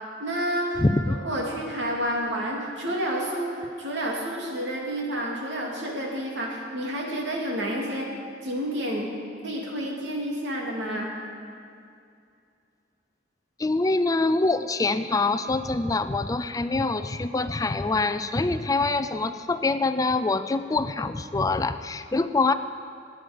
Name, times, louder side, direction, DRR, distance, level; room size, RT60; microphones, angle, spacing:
voice 1, 0.2-0.8 1.2-8.1 8.4-9.1 9.4-11.1, equal, 80° right, -1 dB, 2.7 m, -29 dB
voice 2, 0.8-1.2 13.6-22.5, left 3 dB, 20° left, 11 dB, 0.4 m, -25 dB
19.0 x 9.3 x 5.2 m, 2.4 s
head